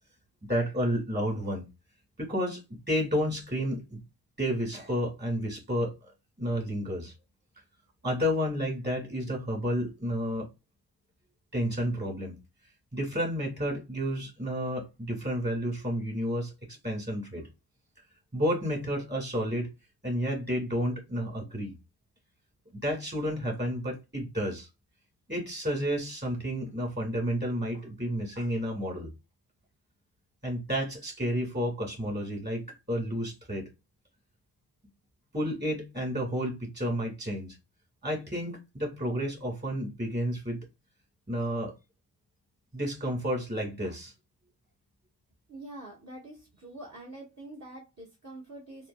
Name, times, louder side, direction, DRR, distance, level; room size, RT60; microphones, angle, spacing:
voice 1, 0.5-1.7 2.2-4.0 4.4-6.0 6.4-7.1 8.0-10.5 11.5-12.4 12.9-17.5 18.3-19.7 20.0-21.8 22.7-24.7 25.3-29.1 30.4-33.7 35.3-37.6 38.0-40.7 41.3-41.7 42.7-44.1, equal, 25° right, 2.0 m, -31 dB
voice 2, 45.5-48.9, right 1 dB, 40° right, 1.2 m, -45 dB
4.2 x 2.1 x 2.3 m
cardioid pair, 65°, 40 cm